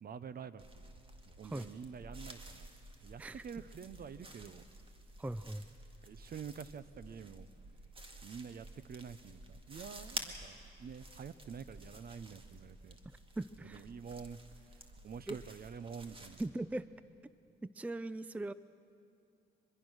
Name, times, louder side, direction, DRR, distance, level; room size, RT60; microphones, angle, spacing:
voice 1, 0.0-0.9 1.2-2.7 3.0-4.6 6.0-7.5 8.2-13.0 13.6-16.4, right 6 dB, 50° right, 15 dB, 0.8 m, -48 dB
sound 1, 0.6-16.5, right 2 dB, 25° right, 2.0 m, -51 dB
voice 2, 5.2-5.7 13.1-13.8 15.3-15.4 16.4-16.9 17.6-18.5, right 2 dB, 5° right, 16 dB, 0.4 m, -40 dB
24.0 x 22.0 x 6.4 m, 2.6 s
cardioid pair, 90°, 20 cm